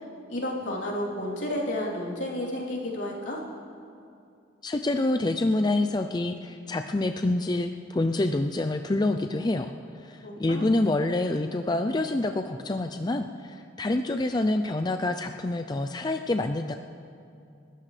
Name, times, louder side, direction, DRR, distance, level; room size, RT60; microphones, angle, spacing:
voice 1, 0.3-3.4 10.2-10.7, left 1 dB, 75° left, -5 dB, 3.4 m, -31 dB
voice 2, 4.6-16.7, left 2 dB, 20° left, 7 dB, 0.4 m, -27 dB
30.0 x 13.5 x 3.3 m, 2.5 s
head